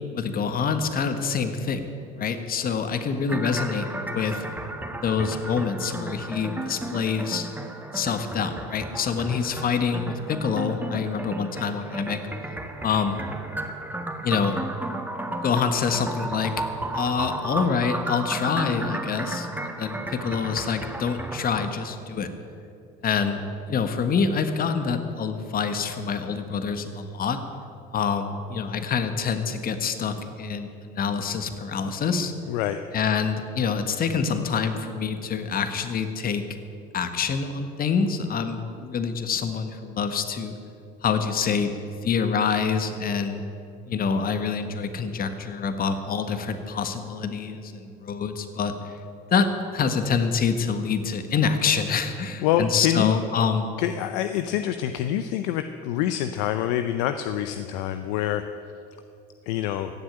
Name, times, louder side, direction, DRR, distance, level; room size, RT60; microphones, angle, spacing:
voice 1, 0.1-1.9 2.1-4.4 5.0-7.5 7.9-12.2 12.8-13.2 14.2-14.6 15.4-16.5 16.9-22.3 23.0-23.4 23.7-27.4 27.9-32.3 32.9-36.4 36.9-40.5 41.0-41.7 42.0-43.4 43.9-49.0 49.3-53.8, left 6 dB, 45° left, 8 dB, 1.5 m, -26 dB
sound 1, 3.3-21.7, right 2 dB, 10° right, 1.8 m, -33 dB
voice 2, 52.4-53.2 53.8-58.4 59.5-59.9, left 11 dB, 80° left, 9 dB, 0.6 m, -26 dB
15.5 x 7.9 x 8.9 m, 2.6 s
hypercardioid pair, 75°, 21 cm